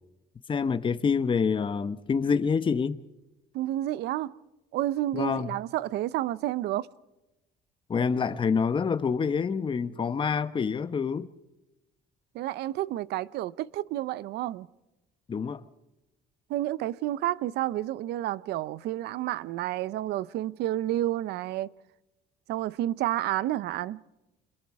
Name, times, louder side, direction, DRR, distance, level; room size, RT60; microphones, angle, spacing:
voice 1, 0.5-3.0 5.1-5.5 7.9-11.3 15.3-15.6, left 5 dB, 30° left, 1.0 m, -27 dB
voice 2, 3.5-4.4 4.7-6.9 12.3-14.7 16.5-21.7 22.5-24.0, right 14 dB, 80° right, 0.7 m, -30 dB
27.5 x 22.0 x 4.8 m
cardioid pair, 110°, 17 cm